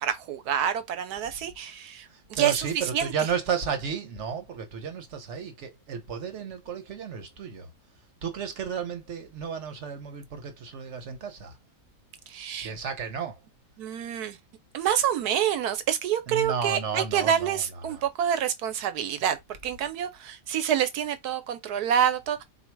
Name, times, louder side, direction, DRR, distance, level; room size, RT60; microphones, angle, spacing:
voice 1, 0.0-2.0 2.3-2.7 2.9-3.1 12.3-12.7 13.8-14.4 14.7-19.4 19.6-22.4, right 9 dB, 70° right, 1.3 m, -27 dB
voice 2, 2.1-7.7 8.2-11.6 12.6-13.4 16.3-18.0, right 6 dB, 50° right, 1.2 m, -33 dB
4.1 x 2.8 x 4.5 m
omnidirectional pair, 1.8 m